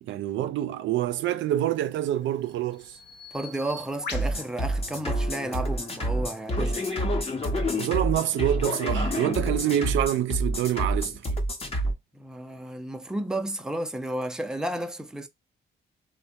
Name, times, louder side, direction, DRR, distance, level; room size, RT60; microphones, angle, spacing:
voice 1, 0.0-3.0 7.8-11.2, right 12 dB, 75° right, 0.4 m, -26 dB
Bird vocalization bird call bird song, 1.6-5.8, left 3 dB, 60° left, 1.0 m, -44 dB
voice 2, 3.3-6.9 12.1-15.3, right 1 dB, 5° right, 0.5 m, -32 dB
sound 1, 4.1-11.9, equal, 30° left, 0.9 m, -28 dB
3.2 x 2.1 x 2.8 m
cardioid pair, 90°, 20 cm